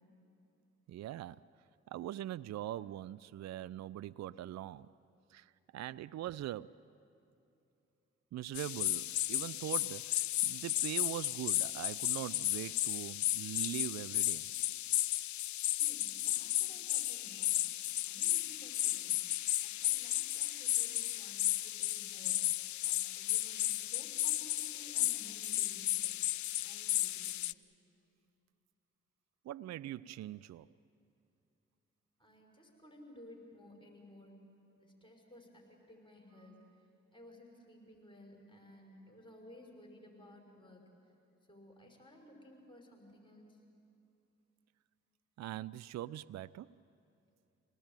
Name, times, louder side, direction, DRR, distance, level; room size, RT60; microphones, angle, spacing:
voice 1, 0.9-1.4 1.9-4.9 5.3-6.8 8.3-14.5 29.4-30.7 45.4-46.7, right 13 dB, 55° right, 19 dB, 0.5 m, -42 dB
sound 1, 8.5-27.5, left 14 dB, 65° left, 0.6 m, -34 dB
voice 2, 15.7-17.6 18.0-19.2 19.6-22.4 22.8-26.2 26.6-27.4 32.2-34.4 34.8-36.6 37.1-40.9 41.5-43.6, left 1 dB, 15° left, 1 dB, 5.8 m, -57 dB
26.5 x 19.0 x 9.0 m, 2.7 s
hypercardioid pair, 40°, 32 cm